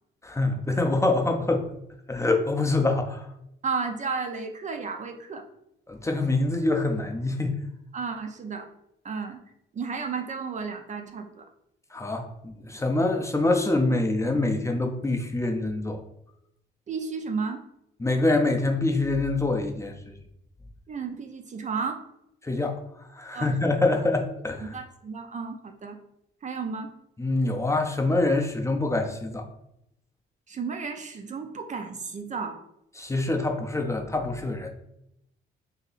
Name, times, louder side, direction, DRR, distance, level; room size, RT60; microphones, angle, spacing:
voice 1, 0.2-1.7 2.1-3.2 5.9-7.5 11.9-16.0 18.0-19.9 22.4-22.8 23.1-24.7 27.2-29.4 33.0-34.7, left 2 dB, 15° left, 3 dB, 0.5 m, -25 dB
voice 2, 3.6-5.4 7.9-8.7 9.0-9.4 9.7-11.4 16.9-17.6 20.9-22.0 23.3-24.0 24.6-26.0 26.4-26.9 30.5-32.6, right 5 dB, 40° right, 5 dB, 0.5 m, -33 dB
2.7 x 2.7 x 3.9 m, 0.80 s
cardioid pair, 90°, 20 cm